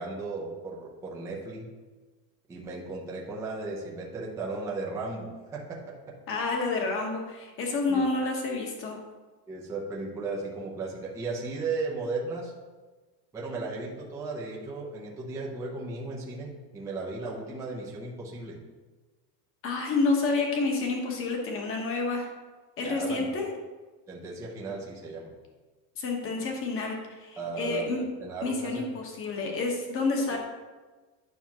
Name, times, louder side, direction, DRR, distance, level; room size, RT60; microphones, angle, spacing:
voice 1, 0.0-1.7 2.5-5.8 7.9-8.1 9.5-12.5 13.3-18.6 22.8-23.3 24.1-25.3 27.4-28.8, right 3 dB, 5° right, -4 dB, 0.5 m, -35 dB
voice 2, 6.3-9.0 19.6-22.3 22.8-23.5 26.0-28.0 28.4-30.4, left 3 dB, 25° left, 1 dB, 1.1 m, -29 dB
9.4 x 5.8 x 2.9 m, 1.3 s
supercardioid pair, 165°, 49 cm